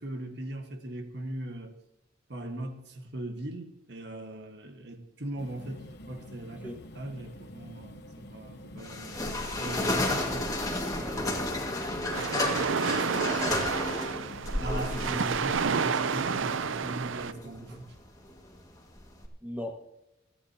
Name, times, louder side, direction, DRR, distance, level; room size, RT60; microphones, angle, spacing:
voice 1, 0.0-1.7 2.3-9.1 9.6-10.5 14.6-17.9, right 1 dB, 60° right, 1.6 m, -39 dB
sound 1, 5.4-15.6, left 1 dB, 55° left, 0.9 m, -47 dB
sound 2, 8.8-19.3, left 2 dB, 20° left, 1.9 m, -33 dB
voice 2, 11.0-11.6 13.1-13.7 19.4-19.9, equal, 10° right, 1.5 m, -39 dB
sound 3, 12.1-17.3, right 5 dB, 80° right, 0.6 m, -30 dB
29.0 x 10.0 x 2.9 m
head